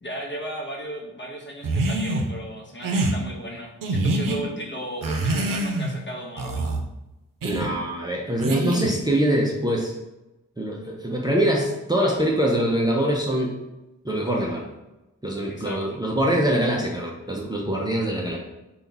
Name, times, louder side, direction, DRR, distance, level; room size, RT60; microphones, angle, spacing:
voice 1, 0.0-6.7 15.5-16.0, right 1 dB, 35° left, 0 dB, 0.8 m, -35 dB
sound 1, 1.6-2.3 2.8-3.2 3.8-4.4 5.0-6.0 6.4-6.8 7.4-7.7 8.4-9.0, right 2 dB, 80° right, 0.6 m, -25 dB
voice 2, 7.4-10.0 10.6-13.6 14.0-14.7 15.2-18.4, right 1 dB, 15° right, -2 dB, 0.4 m, -24 dB
3.9 x 2.3 x 3.8 m, 0.98 s
wide cardioid pair, 120°, 32 cm